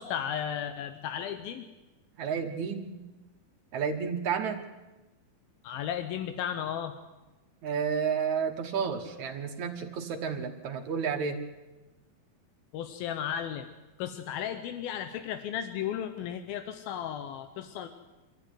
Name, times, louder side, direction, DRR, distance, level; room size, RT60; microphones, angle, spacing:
voice 1, 0.0-1.7 5.6-6.9 12.7-13.7 14.0-17.9, left 9 dB, 85° left, 8 dB, 2.8 m, -34 dB
voice 2, 2.2-2.9 3.7-4.7 7.6-11.4, right 6 dB, 60° right, 6 dB, 2.5 m, -31 dB
26.0 x 14.0 x 9.7 m, 1.1 s
omnidirectional pair, 4.1 m